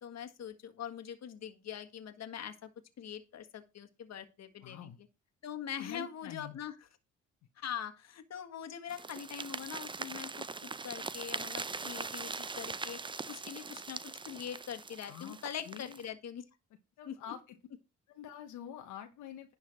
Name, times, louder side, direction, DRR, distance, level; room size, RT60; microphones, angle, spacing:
voice 1, 0.0-2.7 3.0-4.9 5.4-6.7 7.6-10.4 10.8-13.0 13.3-14.0 14.3-16.4 17.0-17.2, left 9 dB, 60° left, 7 dB, 1.7 m, -43 dB
voice 2, 4.6-5.0 5.8-6.6 15.1-15.4 15.7-16.0 17.0-17.6 18.1-19.5, left 9 dB, 90° left, 4 dB, 1.2 m, -46 dB
sound 1, 8.9-16.1, right 4 dB, 15° right, 0.5 m, -41 dB
11.0 x 3.9 x 6.3 m, 0.27 s
cardioid pair, 90°, 30 cm